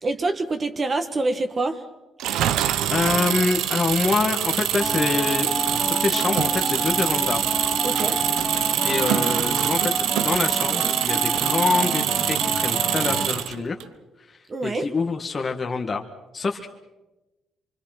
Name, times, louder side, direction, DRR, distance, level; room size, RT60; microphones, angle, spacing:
voice 1, 0.0-1.8 7.8-8.2 14.5-14.9, right 2 dB, 35° right, 6 dB, 1.5 m, -26 dB
Engine, 2.2-13.8, right 11 dB, 85° right, 0.8 m, -24 dB
voice 2, 2.9-5.5 5.9-7.4 8.8-13.8 14.3-16.0 16.3-16.7, left 4 dB, 35° left, 3 dB, 1.7 m, -26 dB
sound 1, 4.8-13.3, left 1 dB, ahead, 1.3 m, -30 dB
25.0 x 24.5 x 6.0 m, 1.0 s
cardioid pair, 90°, 0 cm